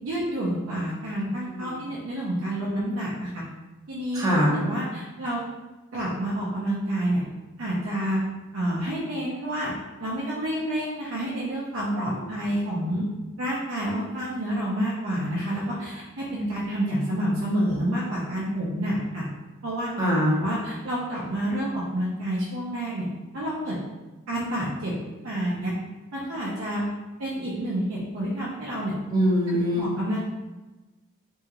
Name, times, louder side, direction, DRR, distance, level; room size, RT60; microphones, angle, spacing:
voice 1, 0.0-3.4 3.9-4.2 4.5-5.4 5.9-7.2 7.6-8.2 8.5-9.7 10.0-13.1 13.4-19.2 19.6-19.9 20.4-23.1 23.3-23.8 24.3-25.7 26.1-26.9 27.2-29.0 29.5-30.2, right 1 dB, 70° right, -6 dB, 0.6 m, -29 dB
voice 2, 1.4-1.9 4.1-4.6 11.9-12.3 20.0-20.4 29.1-29.9, equal, 20° right, -6 dB, 0.8 m, -23 dB
2.9 x 2.7 x 2.4 m, 1.1 s
head